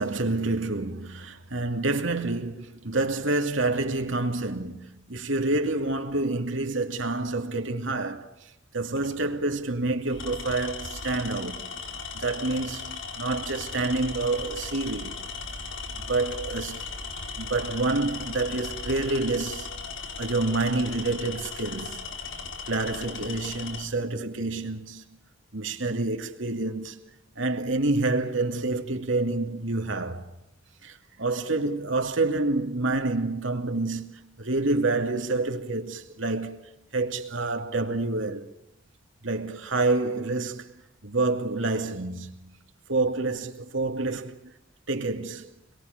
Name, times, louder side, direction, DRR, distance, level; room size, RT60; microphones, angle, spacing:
voice 1, 0.0-8.3 8.7-11.6 12.1-15.2 16.1-16.8 17.4-19.7 20.2-22.0 22.6-25.0 25.5-27.0 27.4-30.3 30.8-36.6 36.9-38.5 39.2-40.7 41.0-42.6 42.9-44.4 44.9-45.5, right 2 dB, 80° right, 2.6 m, -28 dB
Tools, 8.9-9.2 10.1-23.9, left 4 dB, 80° left, 4.2 m, -37 dB
27.0 x 22.0 x 6.7 m
head